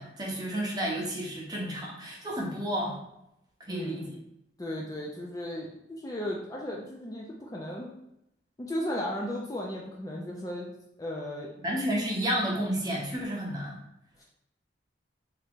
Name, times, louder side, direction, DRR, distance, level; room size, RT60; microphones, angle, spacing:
voice 1, 0.0-3.0 3.7-4.0 11.6-13.8, equal, 20° right, -3 dB, 0.8 m, -31 dB
voice 2, 3.7-4.1 4.6-7.9 8.6-11.5 14.2-14.3, left 1 dB, 20° left, -2 dB, 0.4 m, -36 dB
3.5 x 2.8 x 3.6 m, 0.83 s
head